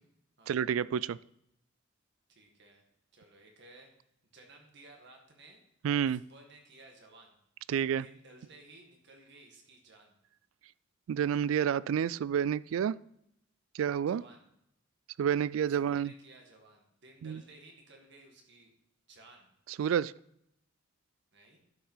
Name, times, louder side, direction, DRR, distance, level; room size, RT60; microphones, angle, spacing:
voice 1, 0.5-1.2 5.8-6.2 7.7-8.1 11.1-13.0 13.7-14.2 15.2-16.1 17.2-17.4 19.8-20.1, right 8 dB, 85° right, 21 dB, 0.3 m, -29 dB
voice 2, 2.3-2.8 3.1-3.9 4.3-5.6 6.1-7.4 8.0-10.2 14.1-14.4 15.7-18.7 19.1-19.5 21.3-21.6, right 2 dB, 60° right, 2 dB, 2.0 m, -56 dB
12.0 x 5.7 x 5.6 m, 0.79 s
head